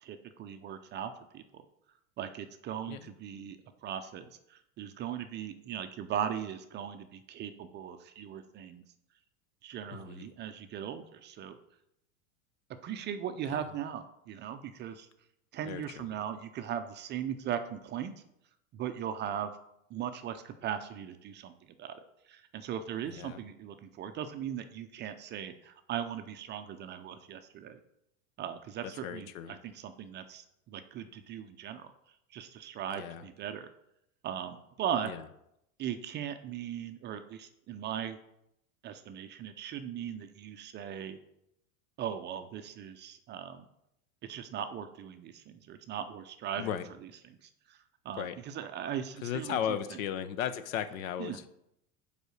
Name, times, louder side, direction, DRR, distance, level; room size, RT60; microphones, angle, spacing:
voice 1, 0.0-1.6 2.2-8.8 9.6-11.6 12.8-15.1 15.5-18.1 18.7-19.5 19.9-21.5 21.8-22.0 22.3-27.8 28.4-31.9 32.3-33.7 34.2-35.1 35.8-38.2 38.8-41.2 42.0-43.7 44.2-46.7 47.4-47.8 48.0-49.8 51.2-51.4, right 9 dB, 25° right, 9 dB, 0.4 m, -38 dB
voice 2, 9.9-10.2 13.5-13.6 15.7-16.1 23.1-23.4 29.0-29.6 32.9-33.3 35.0-35.2 46.6-46.9 48.2-48.4 49.2-51.5, left 9 dB, 70° left, 12 dB, 0.8 m, -36 dB
5.2 x 4.9 x 6.4 m, 0.80 s
hypercardioid pair, 115°, 42 cm